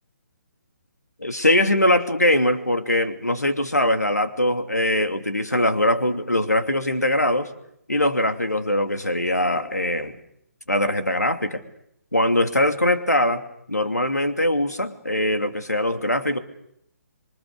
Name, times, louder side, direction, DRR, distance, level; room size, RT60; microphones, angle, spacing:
voice 1, 1.2-7.5 7.9-10.2 10.7-11.6 12.1-13.4 13.7-16.4, left 1 dB, 90° left, 7 dB, 2.8 m, -22 dB
27.0 x 24.0 x 6.8 m, 0.75 s
figure-of-eight pair, 140°, 9 cm